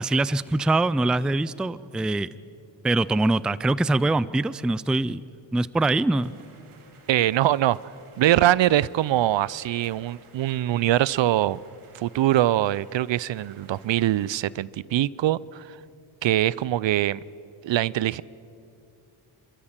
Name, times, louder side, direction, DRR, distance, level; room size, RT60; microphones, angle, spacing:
voice 1, 0.0-2.3 2.8-5.2 5.5-6.3, right 2 dB, ahead, 0.4 m, -23 dB
sound 1, 6.1-14.4, right 4 dB, 80° right, 2.4 m, -55 dB
voice 2, 7.1-7.8 8.2-11.6 11.9-15.8 16.2-17.2 17.6-18.2, right 13 dB, 65° right, 0.6 m, -23 dB
26.5 x 13.5 x 7.4 m
cardioid pair, 55°, 50 cm